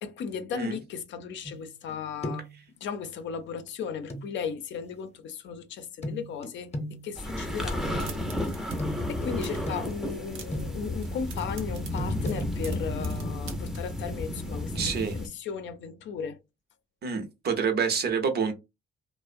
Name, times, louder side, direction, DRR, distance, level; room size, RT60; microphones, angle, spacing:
voice 1, 0.0-2.5 2.8-8.1 9.1-16.4, left 6 dB, 70° left, 0.5 m, -36 dB
sound 1, 1.4-1.9 2.2-2.6 4.1-4.2 6.0-11.0 12.0-12.4, left 1 dB, 35° left, 0.7 m, -37 dB
sound 2, 7.1-15.3, left 1 dB, ahead, 0.6 m, -32 dB
sound 3, 7.8-8.8 9.0-9.7 10.1-10.7 11.0-13.8, right 6 dB, 90° right, 0.6 m, -45 dB
voice 2, 14.8-15.2 17.0-18.5, right 6 dB, 55° right, 0.7 m, -27 dB
2.5 x 2.0 x 2.4 m
cardioid pair, 90°, 20 cm